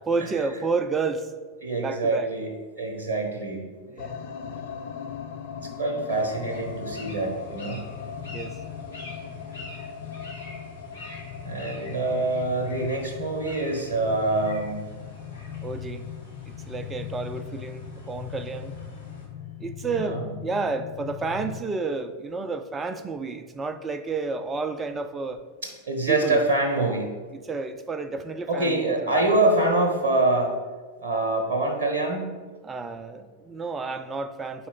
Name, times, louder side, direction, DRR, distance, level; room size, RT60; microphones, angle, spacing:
voice 1, 0.1-1.3 1.8-2.3 3.9-4.3 8.3-8.6 15.6-16.0 16.4-18.7 19.6-25.4 26.1-26.4 27.3-29.4 32.6-34.7, right 4 dB, 15° right, 9 dB, 0.4 m, -31 dB
voice 2, 1.6-2.5 2.8-3.6 5.6-7.8 11.4-14.9 19.9-20.3 25.6-27.1 28.5-30.5 31.0-32.3, right 2 dB, 65° right, 1 dB, 0.8 m, -25 dB
sound 1, 4.0-21.6, left 8 dB, 50° left, 0.5 m, -39 dB
sound 2, 6.1-19.2, left 1 dB, 80° left, 1.5 m, -45 dB
4.8 x 4.2 x 5.8 m, 1.4 s
figure-of-eight pair, 90°, 0 cm